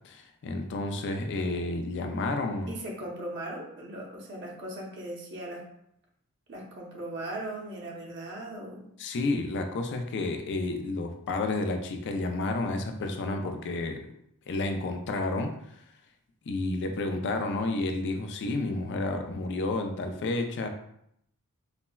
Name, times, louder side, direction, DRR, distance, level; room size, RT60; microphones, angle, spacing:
voice 1, 0.0-2.7 9.0-14.1 14.5-15.5 16.5-20.7, left 2 dB, 55° left, 5 dB, 0.4 m, -30 dB
voice 2, 2.7-5.6 6.5-8.8, right 1 dB, 55° right, -2 dB, 0.8 m, -38 dB
4.0 x 2.0 x 2.2 m, 0.75 s
head